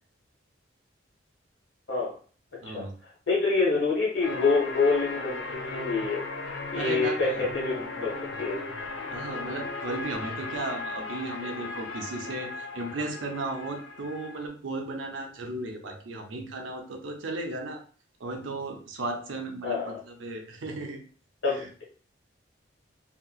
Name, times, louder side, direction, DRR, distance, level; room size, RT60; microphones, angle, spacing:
voice 1, 2.6-2.9 6.7-7.6 9.1-17.8 18.2-21.0 21.5-21.7, right 2 dB, 75° right, 3 dB, 0.6 m, -35 dB
voice 2, 3.3-6.2 6.7-8.6 19.6-20.0 21.4-21.8, left 4 dB, 65° left, -3 dB, 1.1 m, -26 dB
sound 1, 4.2-14.5, left 3 dB, 80° left, 0.5 m, -37 dB
2.8 x 2.8 x 2.3 m, 0.41 s
head